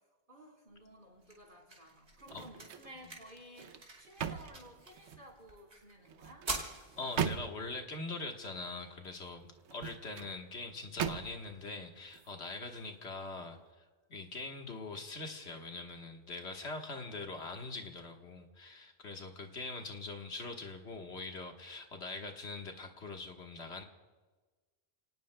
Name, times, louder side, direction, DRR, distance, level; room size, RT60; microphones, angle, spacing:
voice 1, 0.3-6.5, equal, 50° right, -1 dB, 4.1 m, -55 dB
sound 1, 0.7-12.7, right 2 dB, 70° right, 3.2 m, -49 dB
sound 2, 2.2-3.0 3.4-5.3 6.1-7.8 9.6-10.3 11.0-11.6 12.1-12.3, right 8 dB, 90° right, 1.0 m, -39 dB
voice 2, 7.0-13.6 14.1-23.8, left 3 dB, 75° left, 3 dB, 1.7 m, -43 dB
30.0 x 18.5 x 2.2 m, 1.3 s
omnidirectional pair, 1.1 m